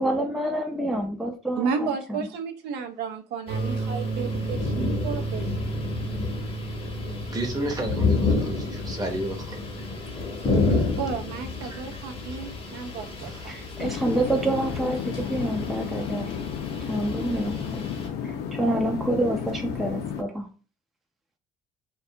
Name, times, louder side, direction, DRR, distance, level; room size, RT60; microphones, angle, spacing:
voice 1, 0.0-2.3 13.5-16.4 16.8-17.8 18.2-20.5, right 1 dB, ahead, 3 dB, 0.4 m, -27 dB
voice 2, 1.6-5.5 11.0-13.6, right 5 dB, 80° right, 5 dB, 0.5 m, -33 dB
sound 1, 3.5-18.1, left 3 dB, 35° left, 0.8 m, -30 dB
sound 2, 3.5-13.4, right 4 dB, 45° right, 1.0 m, -35 dB
voice 3, 7.3-9.6 10.6-10.9 11.6-11.8 13.2-13.5, right 1 dB, 20° right, 2 dB, 0.7 m, -33 dB
sound 3, 13.8-20.2, left 7 dB, 80° left, 0.5 m, -33 dB
2.4 x 2.3 x 2.7 m, 0.35 s
cardioid pair, 110°, 17 cm